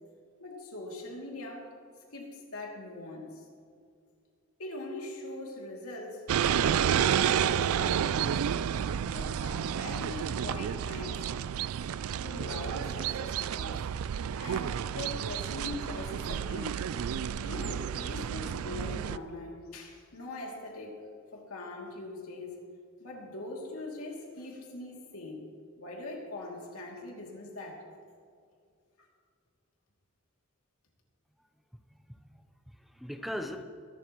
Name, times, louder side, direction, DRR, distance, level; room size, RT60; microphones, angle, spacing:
voice 1, 0.4-1.7 2.1-3.4 4.6-8.4 9.1-11.3 12.2-13.8 14.4-16.9 17.4-21.1 21.3-22.6 23.0-27.9 29.0-29.1, left 2 dB, 85° left, -1 dB, 2.7 m, -42 dB
sound 1, 6.3-19.2, right 8 dB, 80° right, 0.4 m, -30 dB
voice 2, 31.9-33.6, equal, ahead, 6 dB, 0.6 m, -40 dB
22.5 x 12.0 x 3.1 m, 2.3 s
head